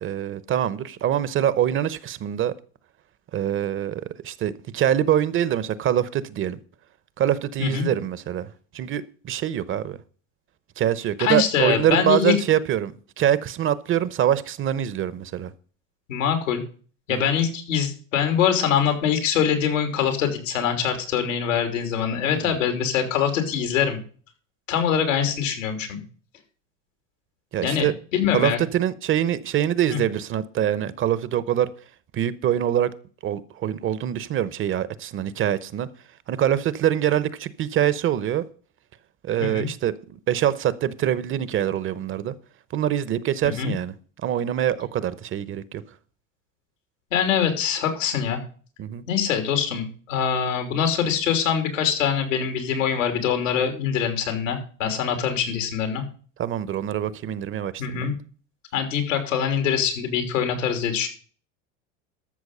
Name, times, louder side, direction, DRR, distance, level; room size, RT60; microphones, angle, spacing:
voice 1, 0.0-2.5 3.3-6.6 7.2-8.5 8.7-10.0 10.8-15.5 17.1-17.3 22.2-22.6 27.5-27.9 28.3-31.7 32.1-32.9 33.2-35.9 36.3-38.5 39.2-42.3 42.7-45.8 48.8-49.0 56.4-58.1, right 10 dB, 35° right, 0.8 m, -24 dB
voice 2, 11.2-12.3 16.1-16.6 17.1-24.0 24.7-26.0 27.6-28.6 29.9-30.0 39.4-39.7 43.4-43.7 47.1-48.4 49.1-56.0 57.8-58.1 58.7-61.1, left 8 dB, 90° left, 3.2 m, -24 dB
13.5 x 6.3 x 5.4 m
supercardioid pair, 105°, 38 cm